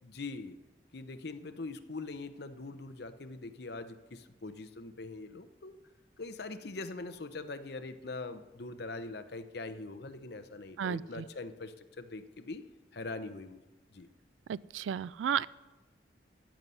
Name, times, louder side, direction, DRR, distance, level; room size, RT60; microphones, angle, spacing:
voice 1, 0.0-0.6 0.9-5.8 6.2-12.6 12.9-13.6 13.9-14.1, left 3 dB, 60° left, 10 dB, 0.8 m, -42 dB
voice 2, 10.8-11.2 14.5-15.5, right 8 dB, 85° right, 20 dB, 0.3 m, -33 dB
13.5 x 9.3 x 5.6 m, 1.1 s
head